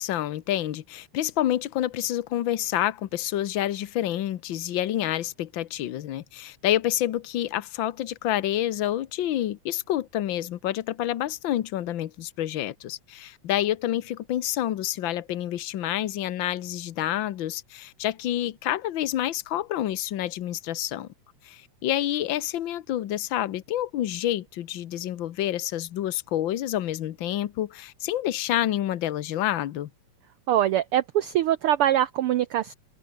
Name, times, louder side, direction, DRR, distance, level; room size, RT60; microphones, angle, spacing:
voice 1, 0.0-21.1 21.4-29.9, left 12 dB, 80° left, 1.0 m, -28 dB
voice 2, 30.5-32.7, right 12 dB, 85° right, 1.2 m, -23 dB
omnidirectional pair, 3.4 m